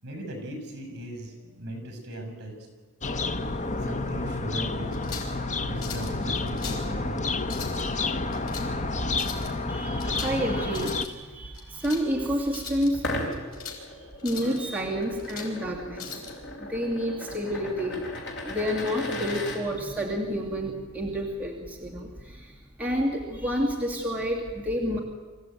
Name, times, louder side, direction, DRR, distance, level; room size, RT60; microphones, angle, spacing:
voice 1, 0.0-2.5 3.8-5.0 5.6-7.3 16.4-16.7, right 1 dB, 55° right, 5 dB, 6.5 m, -38 dB
sound 1, 3.0-11.0, left 3 dB, 35° left, 1.1 m, -30 dB
sound 2, 4.9-5.4 5.8-6.1 6.5-6.9 7.4-7.8 8.3-8.7 9.1-9.5 10.0-10.4 10.7-11.1 11.5-12.0 12.5-12.9 13.3-13.8 14.2-14.6 15.0-15.5 16.0-16.3, left 7 dB, 85° left, 4.9 m, -39 dB
voice 2, 9.7-13.0 14.2-16.2 16.6-18.1 18.4-25.0, equal, 5° right, -3 dB, 2.5 m, -29 dB
sound 3, 12.9-19.6, left 1 dB, 55° left, 4.6 m, -36 dB
25.5 x 15.5 x 9.3 m, 1.3 s
head